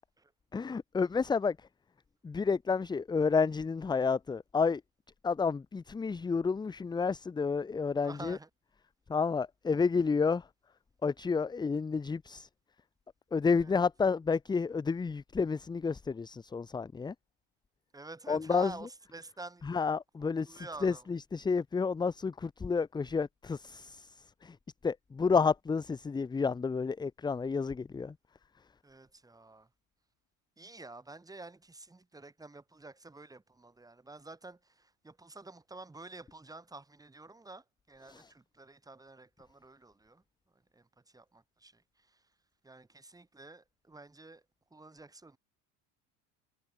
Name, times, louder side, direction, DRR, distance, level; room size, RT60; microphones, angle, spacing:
voice 1, 0.5-1.7 2.2-4.8 5.2-8.4 9.1-10.5 11.0-12.5 13.3-17.1 18.3-18.7 19.6-24.6 24.8-28.1 38.1-38.3, left 5 dB, 10° left, 0.8 m, -30 dB
voice 2, 8.0-8.5 13.6-13.8 17.9-19.7 20.2-21.1 28.8-29.7 30.6-40.2 40.7-42.2 42.6-44.4 44.7-45.4, right 2 dB, 10° right, 7.9 m, -49 dB
cardioid pair, 140°, 38 cm